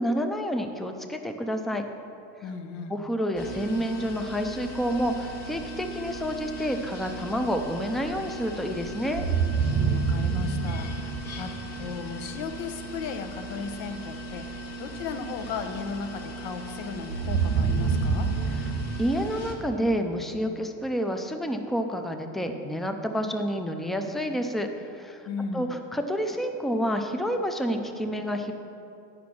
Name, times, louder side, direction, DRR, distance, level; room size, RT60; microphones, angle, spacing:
voice 1, 0.0-1.8 2.9-9.2 19.0-25.2 25.5-28.5, equal, ahead, 5 dB, 0.3 m, -29 dB
voice 2, 2.4-3.0 9.6-14.4 14.8-18.3 25.2-25.8, left 5 dB, 85° left, 7 dB, 0.9 m, -36 dB
sound 1, 3.4-19.6, right 1 dB, 40° left, 1.4 m, -39 dB
sound 2, 9.1-12.1 17.1-20.3, right 5 dB, 65° right, 0.7 m, -27 dB
10.0 x 5.1 x 6.0 m, 2.6 s
cardioid pair, 140°, 37 cm